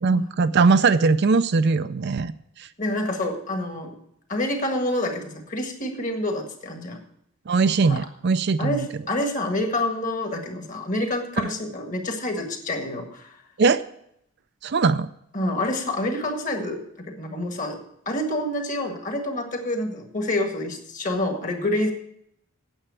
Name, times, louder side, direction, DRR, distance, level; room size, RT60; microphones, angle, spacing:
voice 1, 0.0-2.3 2.6-2.7 7.5-8.9 13.6-13.8 14.6-15.1, right 4 dB, 50° right, 12 dB, 0.4 m, -20 dB
voice 2, 2.8-4.0 4.3-7.0 7.9-8.1 8.6-13.4 15.3-17.8 18.0-21.9, left 1 dB, 35° left, 4 dB, 1.7 m, -27 dB
8.9 x 7.9 x 8.2 m, 0.73 s
head